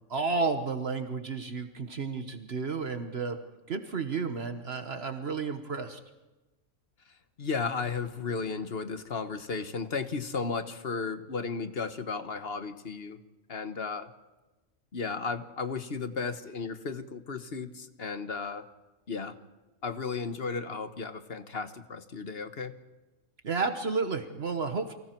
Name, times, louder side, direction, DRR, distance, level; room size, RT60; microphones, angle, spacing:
voice 1, 0.1-3.4 3.7-6.0 23.4-25.0, right 4 dB, 55° right, 7 dB, 1.3 m, -32 dB
voice 2, 7.4-13.2 13.5-14.1 14.9-18.6 19.1-19.4 19.8-22.7, left 4 dB, 50° left, 9 dB, 1.4 m, -34 dB
29.5 x 24.0 x 4.5 m, 1.1 s
omnidirectional pair, 1.3 m